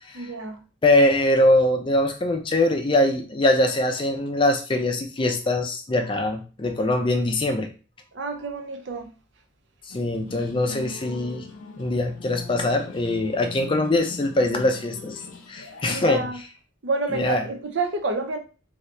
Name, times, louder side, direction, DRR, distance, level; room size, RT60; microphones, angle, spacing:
voice 1, 0.1-0.6 8.1-9.1 15.8-16.4 16.8-18.4, right 3 dB, 60° right, 0.5 m, -28 dB
voice 2, 0.8-7.7 9.9-11.5 11.8-15.2 15.5-16.4 17.1-17.4, left 1 dB, 25° left, 0.4 m, -22 dB
sound 1, 9.9-16.2, left 3 dB, 80° left, 0.6 m, -41 dB
2.7 x 2.7 x 3.2 m
head